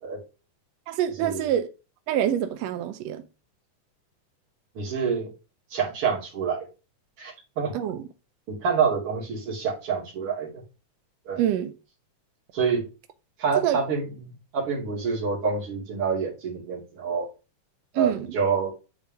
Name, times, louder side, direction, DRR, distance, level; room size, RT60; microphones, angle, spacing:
voice 1, 0.9-1.7 2.1-3.2 7.7-8.0 11.4-11.7 13.6-13.8 17.9-18.3, right 10 dB, 80° right, 1.5 m, -26 dB
voice 2, 4.7-5.3 5.7-6.7 7.2-7.7 8.5-10.5 11.2-11.4 12.5-12.9 13.4-17.3 17.9-18.7, right 6 dB, 50° right, 3.1 m, -27 dB
10.5 x 4.0 x 3.4 m
omnidirectional pair, 3.6 m